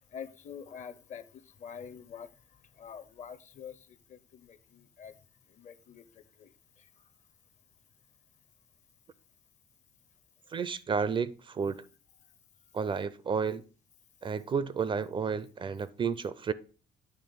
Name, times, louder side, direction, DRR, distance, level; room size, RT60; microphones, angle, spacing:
voice 1, 0.1-1.2 1.6-2.3 2.8-5.1 5.5-6.5, left 7 dB, 45° left, 0.7 m, -46 dB
voice 2, 10.5-11.9 12.7-13.6 14.2-16.5, right 6 dB, 30° right, 0.4 m, -31 dB
8.9 x 3.0 x 5.5 m
cardioid pair, 110°, 17 cm